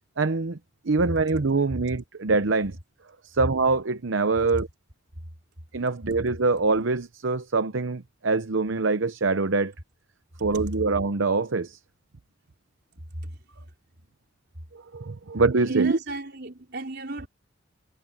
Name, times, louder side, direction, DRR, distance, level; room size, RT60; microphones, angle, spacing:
voice 1, 0.2-0.6 0.8-2.8 3.2-4.7 5.7-9.7 10.4-11.8 14.7-16.0, right 3 dB, 70° right, 0.8 m, -24 dB
voice 2, 15.6-17.3, right 2 dB, 55° right, 4.3 m, -35 dB
head